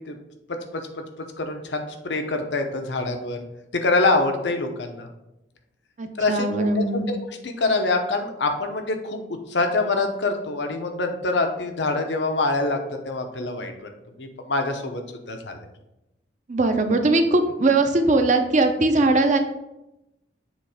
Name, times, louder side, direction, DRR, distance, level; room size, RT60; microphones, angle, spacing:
voice 1, 0.5-0.9 1.4-3.4 3.7-5.1 6.2-7.2 7.4-9.2 9.5-12.8 13.1-13.9 14.2-15.0 15.3-15.6, left 3 dB, 75° left, 5 dB, 0.9 m, -25 dB
voice 2, 6.0-7.2 16.5-19.4, right 2 dB, 45° right, 6 dB, 0.7 m, -20 dB
7.3 x 3.2 x 5.0 m, 0.91 s
head